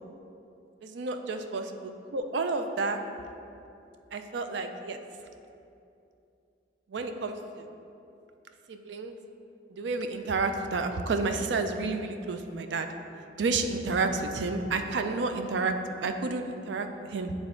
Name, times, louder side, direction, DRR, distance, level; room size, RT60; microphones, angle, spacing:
voice 1, 0.8-3.0 4.1-5.0 6.9-7.6 8.7-9.1 9.7-12.9 13.4-17.3, right 3 dB, 65° right, 7 dB, 0.4 m, -30 dB
8.7 x 3.5 x 3.7 m, 2.6 s
head